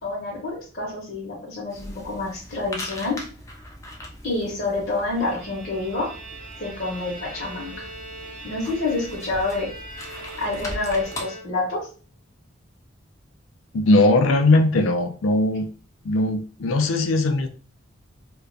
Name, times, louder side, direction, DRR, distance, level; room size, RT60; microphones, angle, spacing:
voice 1, 0.0-3.2 4.2-6.1 6.6-7.9 8.4-11.8, left 3 dB, 50° left, -5 dB, 0.7 m, -28 dB
sound 1, 1.7-11.2, left 1 dB, 15° left, 0.3 m, -40 dB
Bowed string instrument, 4.9-11.9, right 2 dB, 40° right, 0.5 m, -41 dB
voice 2, 13.7-15.7 16.0-17.5, left 2 dB, 85° left, 7 dB, 0.4 m, -19 dB
2.3 x 2.1 x 2.5 m, 0.39 s
head